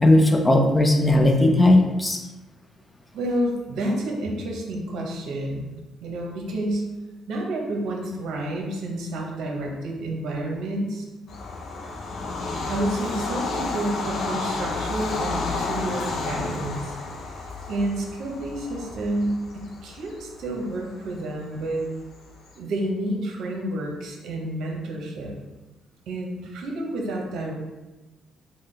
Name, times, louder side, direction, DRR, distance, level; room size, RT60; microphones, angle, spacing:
voice 1, 0.0-2.2, left 1 dB, 15° left, 3 dB, 0.5 m, -17 dB
voice 2, 3.1-5.7 6.0-6.8 7.3-11.1 12.7-17.0 17.2-17.4 17.7-21.9 22.5-25.4 26.1-27.5, right 1 dB, 80° right, 0 dB, 0.7 m, -29 dB
Bird vocalization bird call bird song / Train, 11.3-22.5, left 3 dB, 65° left, 0.5 m, -31 dB
3.8 x 2.2 x 3.2 m, 1.1 s
cardioid pair, 90°, 0 cm